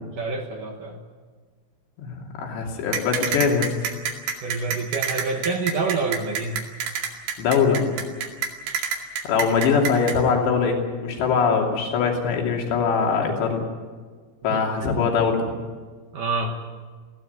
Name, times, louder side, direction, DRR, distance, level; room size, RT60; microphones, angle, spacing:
voice 1, 0.1-1.0 4.4-6.7 14.5-14.6 16.1-16.6, right 4 dB, 65° right, 2 dB, 2.2 m, -27 dB
voice 2, 2.0-3.7 7.4-7.8 9.2-13.6 14.4-15.4, left 5 dB, 75° left, 1 dB, 4.9 m, -22 dB
sound 1, 2.9-10.2, right 6 dB, 80° right, 4.6 m, -27 dB
21.0 x 15.5 x 9.4 m, 1.5 s
omnidirectional pair, 5.2 m